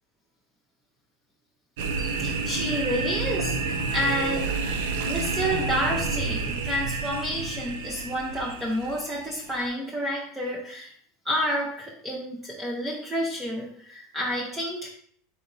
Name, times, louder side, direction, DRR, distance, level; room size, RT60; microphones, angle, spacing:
sound 1, 1.8-9.7, right 4 dB, 75° right, 0.6 m, -29 dB
voice 1, 2.0-4.5 5.0-10.9 11.2-14.9, equal, 10° right, -3 dB, 0.7 m, -30 dB
4.0 x 3.4 x 3.9 m, 0.62 s
supercardioid pair, 135°, 0 cm